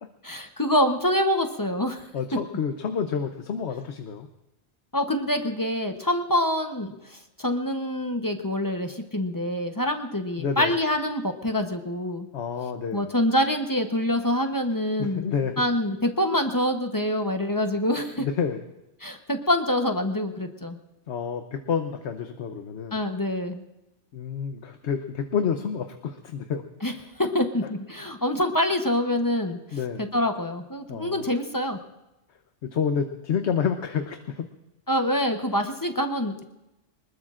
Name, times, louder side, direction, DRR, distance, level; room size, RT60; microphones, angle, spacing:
voice 1, 0.2-2.0 4.9-12.3 12.9-15.2 15.6-18.3 19.0-20.8 22.9-23.6 26.8-26.9 27.2-29.6 30.0-31.8 34.9-36.4, left 1 dB, 20° left, 5 dB, 0.9 m, -25 dB
voice 2, 2.1-4.3 10.4-10.7 12.3-13.1 15.0-15.6 18.2-18.6 21.1-23.0 24.1-26.6 29.7-30.1 30.9-31.3 32.6-34.5, left 7 dB, 75° left, 6 dB, 1.1 m, -29 dB
24.5 x 20.5 x 2.5 m, 0.94 s
omnidirectional pair, 1.1 m